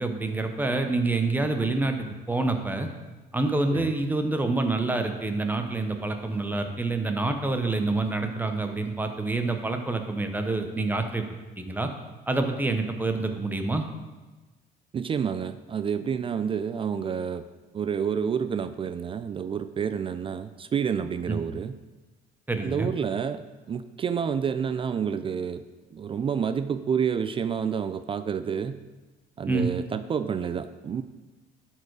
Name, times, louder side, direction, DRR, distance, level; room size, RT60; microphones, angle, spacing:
voice 1, 0.0-2.9 3.3-11.2 11.6-11.9 12.3-13.8 21.3-21.4 22.5-22.9 29.5-29.7, right 2 dB, 10° right, 5 dB, 0.9 m, -27 dB
voice 2, 14.9-17.4 17.7-21.7 22.6-25.6 25.9-28.8 29.4-31.0, right 7 dB, 30° right, 11 dB, 0.4 m, -29 dB
11.5 x 4.5 x 4.7 m, 1.2 s
cardioid pair, 110°, 17 cm